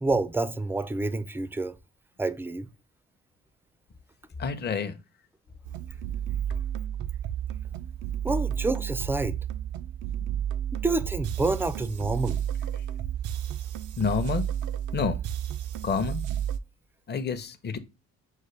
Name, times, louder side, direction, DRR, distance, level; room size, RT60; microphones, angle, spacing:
voice 1, 0.0-1.8 2.2-2.7 8.2-9.4 10.7-12.4, right 2 dB, 10° right, 0.3 m, -28 dB
voice 2, 4.4-5.0 14.0-14.4 14.9-15.2 15.8-16.2 17.1-17.8, left 5 dB, 35° left, 0.6 m, -28 dB
sound 1, 5.7-16.6, right 10 dB, 80° right, 0.5 m, -32 dB
6.4 x 2.1 x 3.2 m
cardioid pair, 90°, 30 cm